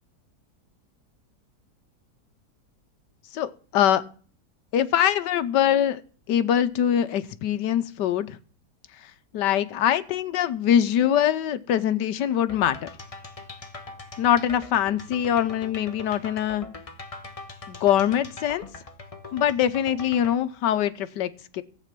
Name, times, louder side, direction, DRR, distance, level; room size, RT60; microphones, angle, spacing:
voice 1, 3.3-4.0 4.7-6.0 6.3-8.4 9.3-12.9 14.2-16.7 17.7-18.6 19.3-21.6, left 10 dB, 80° left, 13 dB, 1.4 m, -23 dB
sound 1, 12.5-20.4, left 3 dB, 25° left, 0.8 m, -42 dB
14.0 x 8.3 x 6.0 m, 0.42 s
omnidirectional pair, 1.9 m